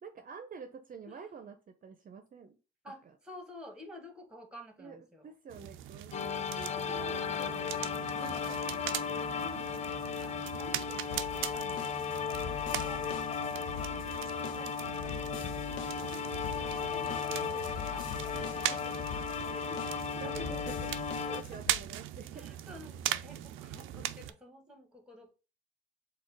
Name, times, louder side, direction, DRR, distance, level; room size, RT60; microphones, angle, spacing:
voice 1, 0.0-2.6 4.8-5.0 5.2-7.9 8.2-9.2 16.6-16.9 18.7-18.8 20.2-22.5, right 6 dB, 45° right, 0.6 m, -49 dB
voice 2, 2.8-5.3 14.6-19.1 19.5-20.7 21.2-21.6 22.3-25.3, left 1 dB, 5° right, 1.4 m, -52 dB
sound 1, 5.5-24.3, right 12 dB, 90° right, 0.4 m, -40 dB
sound 2, 6.1-21.4, left 6 dB, 35° left, 0.5 m, -36 dB
sound 3, 11.1-21.8, left 8 dB, 80° left, 0.6 m, -44 dB
4.3 x 2.4 x 4.6 m
cardioid pair, 90°, 20 cm